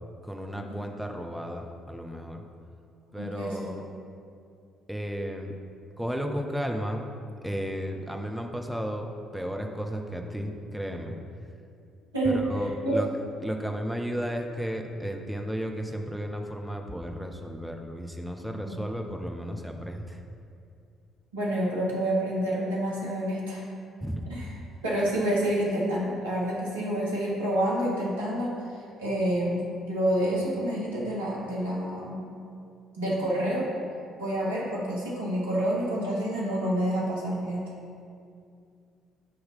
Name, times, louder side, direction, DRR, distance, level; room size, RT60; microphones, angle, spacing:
voice 1, 0.2-2.4 3.1-3.9 4.9-5.5 6.0-7.0 7.4-9.0 9.3-11.1 12.2-13.1 13.4-20.2 24.0-24.2, equal, 5° right, 3 dB, 0.8 m, -33 dB
voice 2, 3.2-3.7 12.1-12.4 12.8-13.0 18.7-18.8 21.3-23.6 24.3-24.4 24.8-28.6 29.0-32.3 33.0-33.7 34.2-37.7, right 1 dB, 80° right, -5 dB, 1.2 m, -28 dB
8.3 x 3.2 x 5.5 m, 2.4 s
figure-of-eight pair, 45°, 0 cm